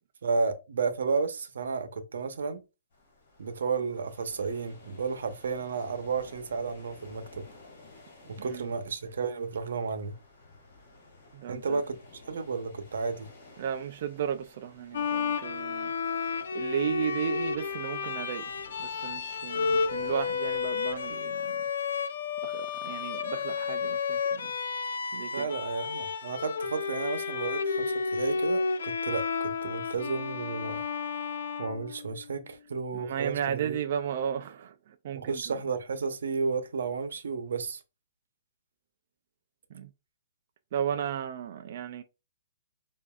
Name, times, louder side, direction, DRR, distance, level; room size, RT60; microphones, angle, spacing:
voice 1, 0.2-2.6 3.4-7.4 8.3-10.1 11.5-13.3 25.3-30.8 31.6-33.8 35.1-37.8, right 4 dB, 85° right, 0.8 m, -32 dB
sound 1, 2.9-21.2, left 3 dB, 45° left, 1.9 m, -54 dB
voice 2, 8.4-8.7 11.3-11.8 13.6-15.9 16.5-18.5 18.8-21.6 22.4-24.5 25.1-25.5 32.9-35.6 39.7-39.9 40.7-42.0, right 9 dB, 40° right, 0.3 m, -34 dB
Bowed string instrument, 14.9-32.4, left 5 dB, 85° left, 0.5 m, -32 dB
7.1 x 2.6 x 2.3 m
hypercardioid pair, 175°, 0 cm